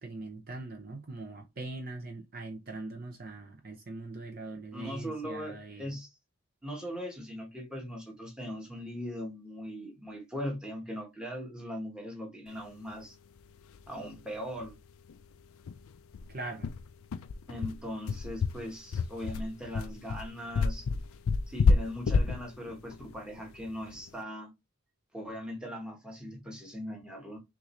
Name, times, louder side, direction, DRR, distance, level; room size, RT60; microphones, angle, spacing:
voice 1, 0.0-6.0 16.3-16.7, right 2 dB, 40° right, 0.6 m, -41 dB
voice 2, 4.7-6.2 6.6-13.2 13.9-14.7 17.5-20.9 21.5-24.5 25.1-27.4, equal, 5° right, 1.2 m, -40 dB
sound 1, 13.7-13.8 14.1-14.2 14.6-14.7 15.1-15.2 15.7-24.1, left 4 dB, 75° left, 0.4 m, -29 dB
6.0 x 2.6 x 3.1 m
head